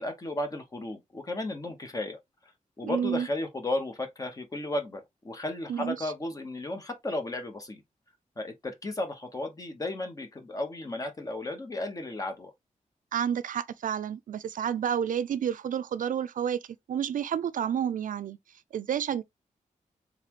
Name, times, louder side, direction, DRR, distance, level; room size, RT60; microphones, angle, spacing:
voice 1, 0.0-2.2 2.8-7.8 8.4-12.5, left 2 dB, 25° left, 0.9 m, -34 dB
voice 2, 2.8-3.3 5.7-6.0 13.1-16.6 16.9-18.4 18.7-19.2, right 8 dB, 80° right, 0.4 m, -30 dB
4.1 x 3.6 x 2.9 m
wide cardioid pair, 180°, 13 cm